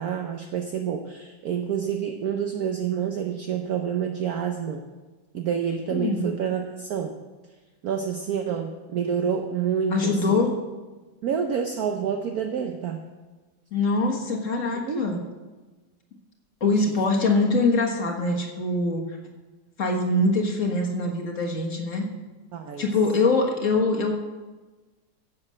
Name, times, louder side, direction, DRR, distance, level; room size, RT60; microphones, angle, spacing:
voice 1, 0.0-4.8 5.3-7.2 7.8-10.4 11.2-13.0 14.8-15.1 22.5-22.9, right 7 dB, 60° right, 4 dB, 1.2 m, -28 dB
voice 2, 5.9-6.3 9.9-10.6 13.7-15.2 16.6-19.0 19.8-22.1 22.8-24.1, left 3 dB, 45° left, 1 dB, 1.8 m, -23 dB
10.5 x 7.7 x 7.6 m, 1.3 s
omnidirectional pair, 2.0 m